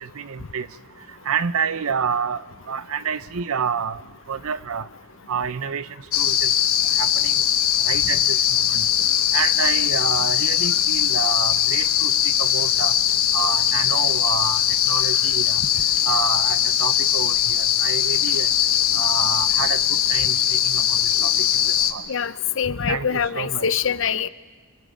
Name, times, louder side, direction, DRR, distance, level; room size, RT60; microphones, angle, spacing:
voice 1, 0.0-0.7 1.3-2.4 2.7-4.0 4.3-4.8 5.3-5.9 6.2-6.5 7.0-7.4 7.8-8.4 8.7-8.9 9.3-12.1 12.4-12.9 13.3-14.6 14.9-15.6 16.0-18.5 19.0-21.5 21.9-22.0 22.9-23.7, right 6 dB, 75° right, 16 dB, 0.6 m, -28 dB
sound 1, 6.1-21.9, left 10 dB, 75° left, 1.2 m, -20 dB
voice 2, 22.1-24.3, left 7 dB, 60° left, 15 dB, 0.6 m, -24 dB
29.0 x 25.5 x 5.1 m, 1.4 s
head